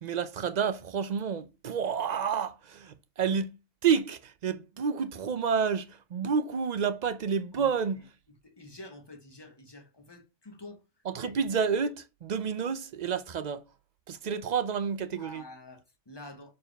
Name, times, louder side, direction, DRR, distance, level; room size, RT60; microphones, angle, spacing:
voice 1, 0.0-8.1 11.0-13.6 14.1-15.4, right 6 dB, 60° right, 0.4 m, -30 dB
voice 2, 8.6-10.8 11.1-11.4 15.2-16.5, left 2 dB, 20° left, 1.1 m, -47 dB
6.4 x 4.5 x 3.3 m
omnidirectional pair, 1.3 m